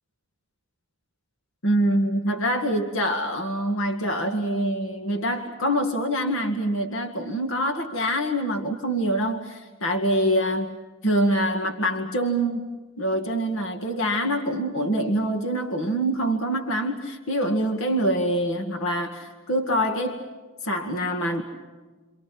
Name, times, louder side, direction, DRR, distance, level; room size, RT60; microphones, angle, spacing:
voice 1, 1.6-10.8 11.0-12.7 13.0-20.2 20.6-21.4, right 1 dB, 65° left, 5 dB, 2.1 m, -25 dB
29.0 x 27.5 x 6.1 m, 1.3 s
head